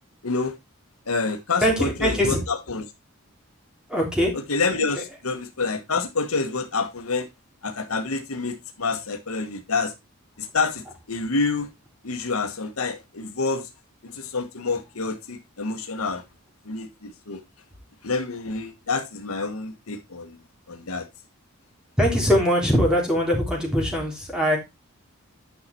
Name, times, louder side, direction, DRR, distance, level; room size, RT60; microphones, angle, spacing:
voice 1, 0.2-0.6 1.1-2.9 4.5-7.3 7.6-9.9 10.4-11.7 12.0-13.7 14.0-16.2 16.6-17.4 18.0-20.4 20.7-21.1, left 4 dB, 85° left, 1.3 m, -28 dB
voice 2, 1.6-2.4 3.9-4.3 22.0-24.6, equal, 5° right, 3.4 m, -21 dB
9.7 x 5.7 x 4.3 m
head